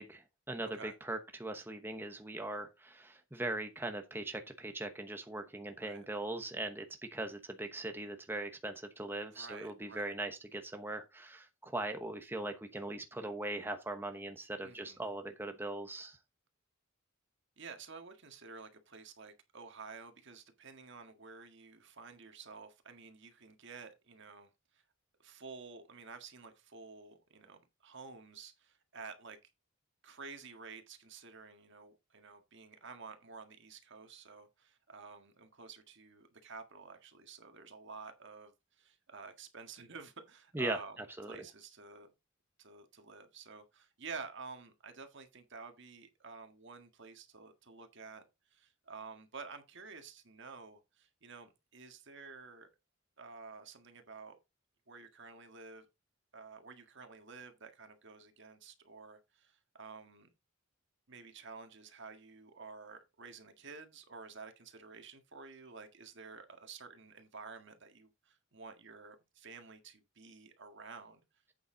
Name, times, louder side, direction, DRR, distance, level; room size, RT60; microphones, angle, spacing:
voice 1, 0.0-6.9 7.1-16.2 40.5-41.4, right 2 dB, 10° right, 1.0 m, -40 dB
voice 2, 9.3-10.1 14.6-15.0 17.6-24.8 25.2-29.4 30.0-42.1 42.6-52.7 53.2-54.4 54.9-55.9 56.3-60.3 61.1-71.2, right 4 dB, 60° right, 1.7 m, -51 dB
8.5 x 7.2 x 3.8 m
head